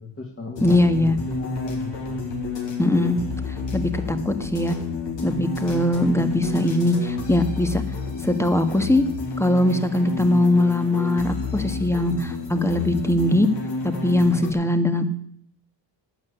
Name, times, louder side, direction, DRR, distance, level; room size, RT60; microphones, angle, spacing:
voice 1, 0.0-2.2, left 3 dB, 25° left, -1 dB, 2.8 m, -35 dB
sound 1, 0.6-14.5, left 4 dB, 65° left, 4.7 m, -30 dB
voice 2, 0.6-1.2 2.8-3.2 3.7-4.7 5.2-7.8 8.2-9.0 9.4-13.5 14.0-15.0, left 1 dB, 5° left, 9 dB, 1.7 m, -21 dB
12.0 x 9.2 x 8.3 m, 0.65 s
cardioid pair, 85°, 47 cm